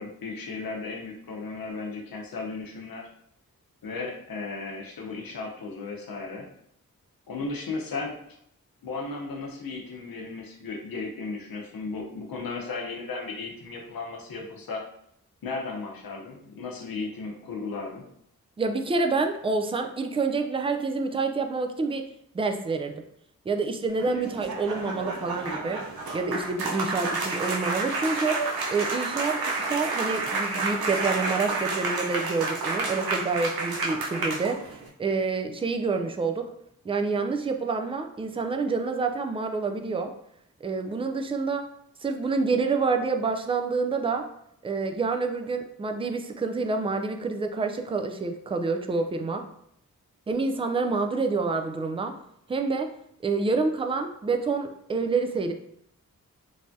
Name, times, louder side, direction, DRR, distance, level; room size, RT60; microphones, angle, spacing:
voice 1, 0.0-3.1 3.8-6.5 7.3-8.2 8.8-14.8 15.4-18.1, left 3 dB, 75° left, 1 dB, 0.7 m, -35 dB
voice 2, 18.6-22.0 22.3-22.9 23.5-25.8 26.1-28.4 28.7-34.7 35.0-36.5 36.8-40.1 40.6-41.7 42.0-44.3 44.6-49.4 50.3-52.2 52.5-52.9 53.2-55.5, right 4 dB, 15° right, 6 dB, 0.3 m, -27 dB
sound 1, 23.9-34.9, right 3 dB, 85° right, 0.6 m, -30 dB
3.2 x 2.2 x 2.6 m, 0.73 s
cardioid pair, 45°, 35 cm